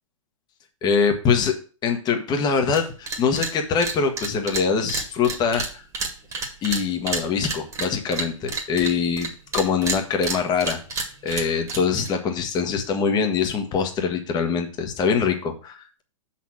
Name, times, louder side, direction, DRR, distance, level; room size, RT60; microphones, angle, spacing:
voice 1, 0.8-1.5 1.8-5.6 6.6-16.0, left 6 dB, 25° left, 5 dB, 1.3 m, -23 dB
sound 1, 2.7-2.8 3.1-3.5 3.8-9.3 9.5-12.1, right 4 dB, 20° right, 1.8 m, -29 dB
6.9 x 4.3 x 6.3 m, 0.38 s
figure-of-eight pair, 105°, 17 cm